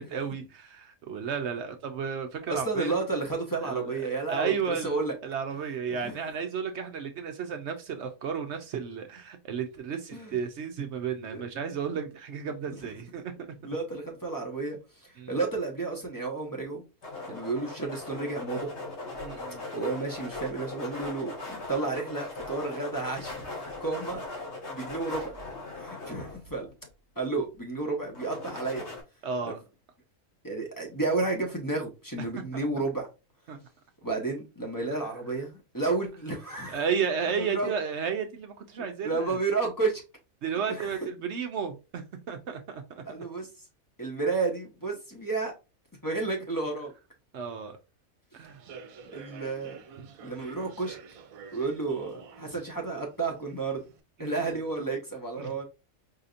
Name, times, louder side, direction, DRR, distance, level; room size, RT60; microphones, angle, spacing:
voice 1, 0.0-2.9 3.6-4.0 4.3-13.6 15.2-15.4 19.2-19.6 29.2-29.6 32.3-32.7 33.5-33.6 36.7-39.4 40.4-43.0 47.3-47.8 48.3-48.6 54.2-54.4 55.4-55.5, right 6 dB, 65° right, 0.8 m, -33 dB
voice 2, 2.5-4.5 4.8-5.2 6.0-6.2 10.1-10.4 11.3-11.4 12.7-12.8 13.6-16.8 17.3-18.7 19.7-23.5 23.8-24.2 24.7-25.3 25.8-26.7 27.2-28.8 29.5-29.6 30.4-33.1 34.0-36.8 37.4-37.8 39.0-40.0 40.7-40.9 43.0-43.5 44.0-45.5 46.0-46.9 49.1-49.8 50.2-51.0 51.5-53.8 54.2-55.7, right 3 dB, 15° left, 0.9 m, -31 dB
sound 1, 17.0-26.9 28.1-29.0, left 2 dB, 55° left, 1.5 m, -39 dB
Human voice / Subway metro underground, 48.4-54.0, right 5 dB, 80° right, 1.1 m, -49 dB
4.8 x 2.7 x 2.5 m
omnidirectional pair, 1.5 m